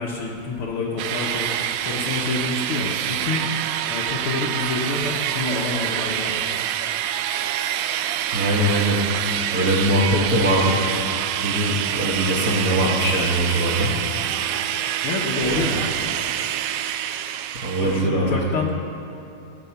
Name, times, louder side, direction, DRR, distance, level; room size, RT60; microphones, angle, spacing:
voice 1, 0.0-1.5 1.8-3.5 3.9-6.3 15.0-16.0 17.8-18.8, left 3 dB, 70° left, -4 dB, 1.3 m, -27 dB
sound 1, 1.0-18.1, right 10 dB, 80° right, 1.9 m, -26 dB
voice 2, 8.3-9.0 9.5-10.8 11.4-13.9 15.4-15.6 17.6-18.4, equal, 50° right, -3 dB, 1.0 m, -21 dB
17.5 x 7.4 x 5.8 m, 2.7 s
omnidirectional pair, 3.8 m